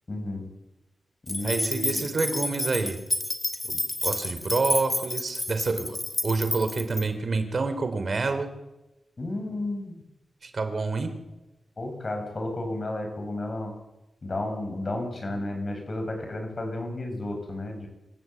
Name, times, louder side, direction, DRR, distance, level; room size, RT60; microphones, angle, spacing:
voice 1, 0.1-0.5 1.2-2.0 9.2-10.0 11.8-13.8 14.2-17.9, left 1 dB, 45° left, 4 dB, 7.8 m, -32 dB
sound 1, 1.3-7.0, left 1 dB, 20° left, 3.2 m, -30 dB
voice 2, 1.4-3.0 3.6-6.0 6.2-8.5 10.4-11.1, right 3 dB, 55° right, 9 dB, 3.2 m, -28 dB
25.5 x 14.5 x 8.6 m, 1.0 s
cardioid pair, 65°, 0 cm